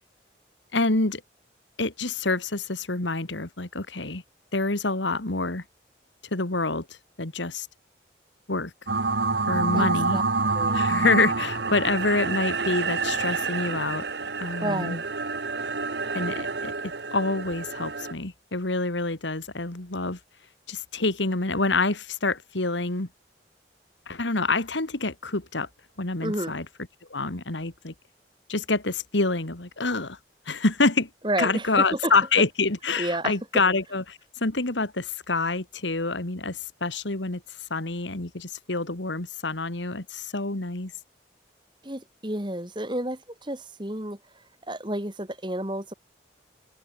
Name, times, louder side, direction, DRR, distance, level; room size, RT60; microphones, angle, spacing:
voice 1, 0.7-1.2 1.8-4.2 4.5-5.6 6.3-6.9 7.2-7.7 8.5-8.7 9.5-10.2 10.7-14.0 14.4-15.0 16.1-20.2 20.7-23.1 24.1-25.7 26.0-26.7 27.1-27.9 28.5-30.2 30.5-31.1 31.4-37.4 37.7-40.9, left 3 dB, 85° left, 2.3 m, -27 dB
sound 1, 8.9-18.1, right 4 dB, 65° right, 1.6 m, -28 dB
voice 2, 9.7-10.2 10.5-11.0 14.6-15.1 26.2-26.6 31.2-32.1 33.0-33.3 41.8-45.9, right 1 dB, 25° right, 3.0 m, -31 dB
open air
head